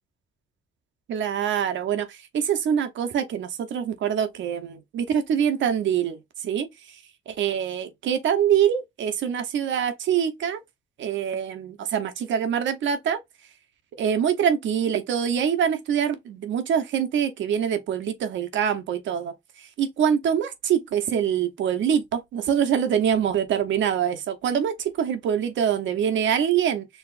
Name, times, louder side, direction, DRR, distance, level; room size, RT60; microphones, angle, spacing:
voice 1, 1.1-6.7 7.3-10.6 11.0-13.2 14.0-26.9, right 8 dB, 70° right, 0.9 m, -24 dB
4.8 x 3.0 x 2.5 m
cardioid pair, 90°, 20 cm